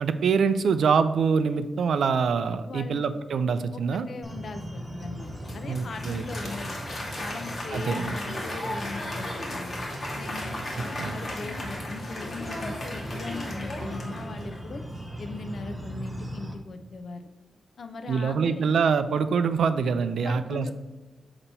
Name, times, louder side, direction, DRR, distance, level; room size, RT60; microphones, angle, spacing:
voice 1, 0.0-4.1 5.7-6.2 7.7-8.1 11.0-11.2 18.1-20.7, right 5 dB, 70° right, 11 dB, 0.4 m, -25 dB
voice 2, 2.7-3.0 3.9-6.8 7.2-9.8 10.1-14.8 15.2-17.2 17.8-18.7 20.2-20.7, left 3 dB, 55° left, 8 dB, 0.5 m, -39 dB
sound 1, 4.2-16.5, equal, 10° right, 0.7 m, -39 dB
Applause, 5.2-14.8, left 1 dB, 30° left, 1.3 m, -36 dB
6.7 x 2.9 x 5.4 m, 1.1 s
wide cardioid pair, 145°, 0 cm